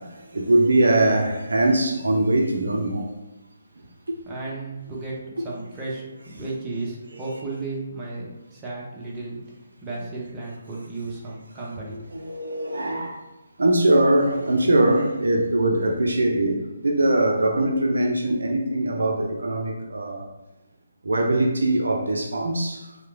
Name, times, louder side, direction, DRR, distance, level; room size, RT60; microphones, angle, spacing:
voice 1, 0.0-3.1 7.1-7.3 11.9-13.2 13.6-20.3 21.0-22.9, right 1 dB, 75° right, 2 dB, 0.4 m, -22 dB
voice 2, 4.3-5.2 5.4-9.4 9.8-12.1, right 3 dB, 15° right, -5 dB, 0.6 m, -34 dB
2.9 x 2.0 x 2.5 m, 1.0 s
figure-of-eight pair, 145°, 0 cm